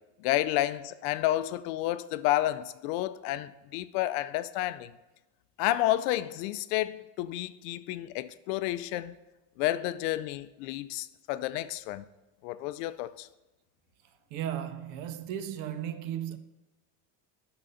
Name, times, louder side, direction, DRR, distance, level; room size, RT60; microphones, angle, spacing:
voice 1, 0.2-4.9 5.6-9.2 9.6-12.1 12.4-13.3, left 15 dB, 90° left, 0.6 m, -30 dB
voice 2, 14.3-16.4, right 10 dB, 45° right, 0.4 m, -35 dB
12.0 x 4.0 x 3.9 m
cardioid pair, 175°, 46 cm